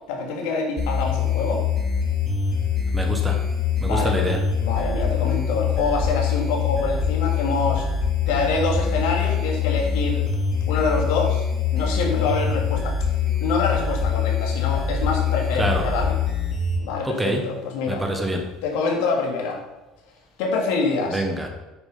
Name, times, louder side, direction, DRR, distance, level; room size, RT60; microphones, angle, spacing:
voice 1, 0.1-1.6 3.8-4.3 4.6-7.9 8.3-10.3 10.7-11.4 11.7-13.1 13.4-16.2 16.8-18.0 18.6-19.6 20.4-21.2, left 4 dB, 90° left, 0 dB, 2.9 m, -25 dB
sound 1, 0.8-16.8, left 6 dB, 25° left, 1.9 m, -24 dB
voice 2, 2.9-3.4 3.8-4.4 15.6-15.9 17.0-17.5 17.9-18.5 21.1-21.5, right 1 dB, 10° right, 3 dB, 1.2 m, -26 dB
9.2 x 6.9 x 5.8 m, 1.0 s
cardioid pair, 170°, 0 cm